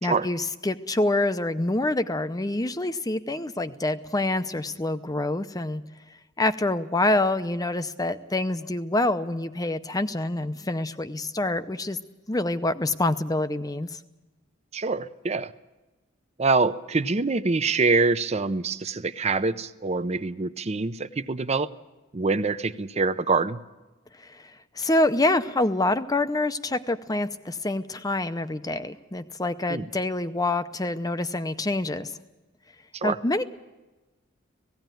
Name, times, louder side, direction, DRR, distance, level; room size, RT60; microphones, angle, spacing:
voice 1, 0.0-5.8 6.4-12.0 12.3-13.9 24.2-32.1 33.0-33.4, left 2 dB, 20° left, 11 dB, 0.6 m, -26 dB
voice 2, 14.7-15.5 16.4-21.7 22.1-23.6 29.7-29.9 32.9-33.2, right 3 dB, 30° right, 13 dB, 0.6 m, -25 dB
17.5 x 16.5 x 9.2 m, 1.1 s
head